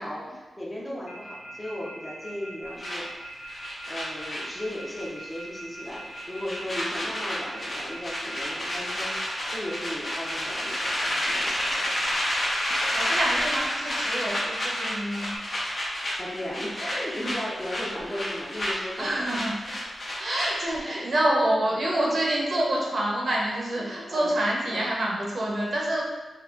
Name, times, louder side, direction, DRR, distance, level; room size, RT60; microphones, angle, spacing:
voice 1, 0.0-3.4 3.9-12.0 16.2-19.4 20.7-21.1 23.8-24.3 24.7-24.9, left 1 dB, 15° left, -5 dB, 0.7 m, -36 dB
Telephone, 1.1-15.4, right 1 dB, 70° left, 0.6 m, -41 dB
sound 1, 2.8-5.1 5.3-5.6 5.9-20.8, left 1 dB, 45° left, 0.9 m, -30 dB
voice 2, 12.9-15.4 19.0-19.5 20.2-26.0, right 1 dB, 50° right, -3 dB, 0.7 m, -27 dB
3.7 x 2.8 x 2.4 m, 1.2 s
wide cardioid pair, 120°, 0 cm